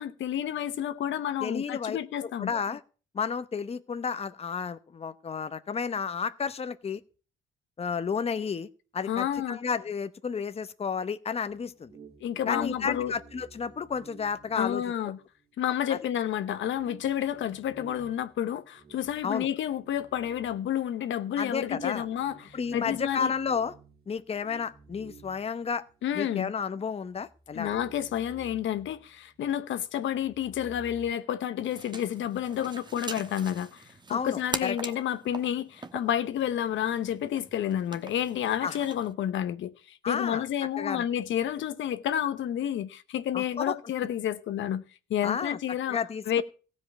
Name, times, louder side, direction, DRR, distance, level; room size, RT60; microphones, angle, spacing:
voice 1, 0.0-2.5 9.1-9.6 12.2-13.1 14.6-15.2 15.6-23.3 26.0-26.5 27.5-44.8 45.1-46.0 46.3-46.4, left 10 dB, 75° left, 0.9 m, -30 dB
voice 2, 1.4-2.0 2.4-2.8 3.1-7.0 7.8-8.7 8.9-11.9 12.5-14.8 15.9-16.0 19.2-19.5 21.4-22.1 22.5-23.7 24.1-25.8 26.1-27.8 34.1-34.7 38.6-38.8 40.0-40.4 40.8-41.1 43.3-43.7 45.2-45.6 45.9-46.4, left 6 dB, 30° left, 0.8 m, -32 dB
sound 1, 11.5-15.8 16.2-16.3 16.7-21.1 21.6-26.3 26.6-26.7 27.1-29.6 29.9-31.1, right 5 dB, 50° right, 2.8 m, -53 dB
sound 2, 31.6-39.1, right 3 dB, 20° right, 1.2 m, -42 dB
15.5 x 5.3 x 8.4 m
cardioid pair, 90°, 20 cm